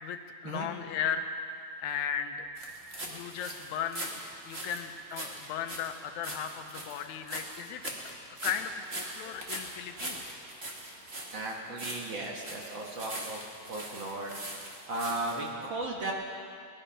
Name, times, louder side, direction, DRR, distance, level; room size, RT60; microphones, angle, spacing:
voice 1, 0.0-2.5 3.1-7.8 8.4-10.2, left 8 dB, 85° left, 7 dB, 2.2 m, -36 dB
sound 1, 2.6-15.5, right 1 dB, 25° right, 1.4 m, -41 dB
voice 2, 11.3-13.4 13.7-14.4 14.9-16.1, right 2 dB, 50° right, -1 dB, 1.6 m, -35 dB
19.0 x 11.0 x 5.6 m, 2.4 s
omnidirectional pair, 3.3 m